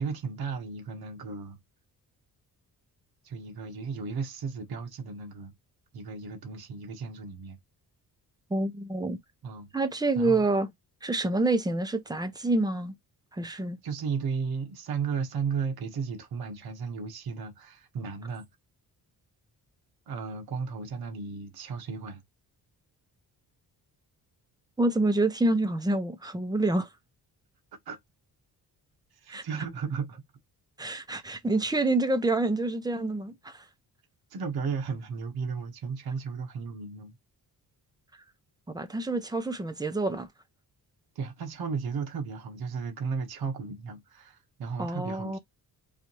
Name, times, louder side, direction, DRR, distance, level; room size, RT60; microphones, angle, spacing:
voice 1, 0.0-1.6 3.2-5.5 5.9-7.6 9.4-9.7 10.1-10.4 13.8-18.5 20.1-22.2 27.8-28.0 29.1-30.2 34.3-37.2 41.1-45.4, right 5 dB, 70° right, 1.3 m, -34 dB
voice 2, 8.5-9.2 9.7-10.7 11.0-12.9 13.3-13.8 24.8-26.9 29.3-29.4 30.8-33.6 38.7-40.3 44.8-45.4, right 2 dB, 10° right, 0.7 m, -27 dB
4.9 x 2.7 x 3.0 m
wide cardioid pair, 140°, 39 cm